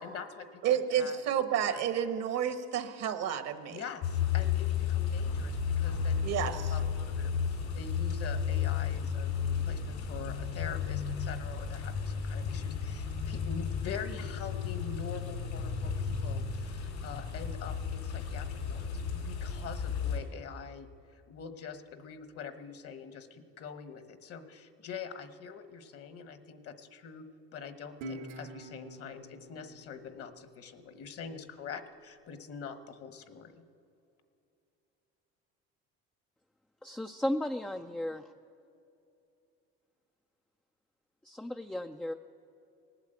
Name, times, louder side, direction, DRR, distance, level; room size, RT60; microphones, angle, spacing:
voice 1, 0.0-1.2 1.6-1.8 3.7-27.2 27.5-33.6, left 6 dB, 55° left, 9 dB, 1.2 m, -44 dB
voice 2, 0.6-3.8 6.2-6.6, right 9 dB, 60° right, 9 dB, 1.2 m, -30 dB
sound 1, 4.0-20.2, left 7 dB, 80° left, 4.4 m, -33 dB
Guitar, 28.0-31.2, right 1 dB, 80° right, 1.5 m, -47 dB
voice 3, 36.8-38.3 41.2-42.1, left 1 dB, 5° left, 5 dB, 0.3 m, -35 dB
18.5 x 8.3 x 7.9 m, 2.7 s
cardioid pair, 110°, 29 cm